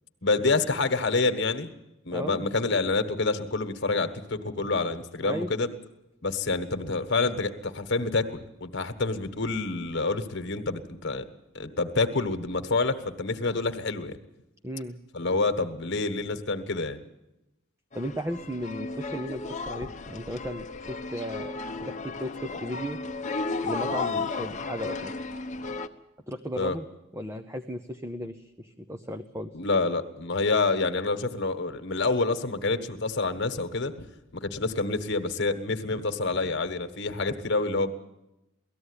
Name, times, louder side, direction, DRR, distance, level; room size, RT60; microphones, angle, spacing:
voice 1, 0.2-1.7 2.0-5.7 6.2-11.2 11.5-14.2 15.1-17.0 26.6-26.8 29.5-33.9 34.3-37.9, left 3 dB, 55° left, 9 dB, 1.4 m, -27 dB
voice 2, 2.1-2.5 5.2-5.5 14.6-15.0 17.9-23.0 23.6-25.1 26.3-26.9 27.1-29.5, equal, 15° right, 7 dB, 0.7 m, -35 dB
sound 1, 17.9-25.9, left 3 dB, 35° left, 1.0 m, -34 dB
18.5 x 14.5 x 9.8 m, 0.92 s
head